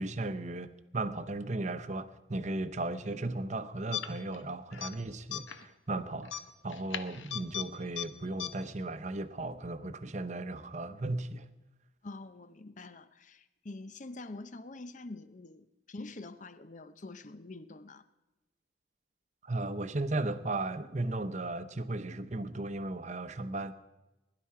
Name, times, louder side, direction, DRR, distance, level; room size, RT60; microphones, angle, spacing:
voice 1, 0.0-6.4 6.6-11.5 19.4-23.7, right 2 dB, 40° right, 0.8 m, -36 dB
sound 1, 3.9-4.4 4.7-4.9 5.3-5.6 6.2-7.7 8.0-8.1 8.4-8.5, left 10 dB, 85° left, 0.9 m, -37 dB
voice 2, 12.0-18.0, left 2 dB, 40° left, 0.7 m, -46 dB
22.0 x 11.5 x 4.8 m
head